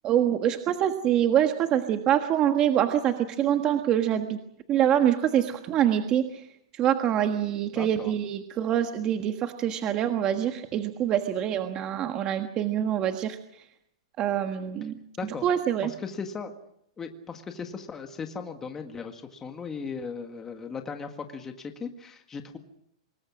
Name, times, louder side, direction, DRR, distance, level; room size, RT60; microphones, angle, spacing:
voice 1, 0.0-4.4 4.7-6.5 6.7-13.4 14.2-15.0 15.4-15.9, right 10 dB, 25° right, 6 dB, 1.5 m, -25 dB
voice 2, 7.7-8.1 15.2-15.5 15.8-16.6 17.0-22.6, left 5 dB, 15° left, 5 dB, 1.7 m, -37 dB
26.5 x 21.0 x 6.3 m, 0.73 s
supercardioid pair, 165°, 3 cm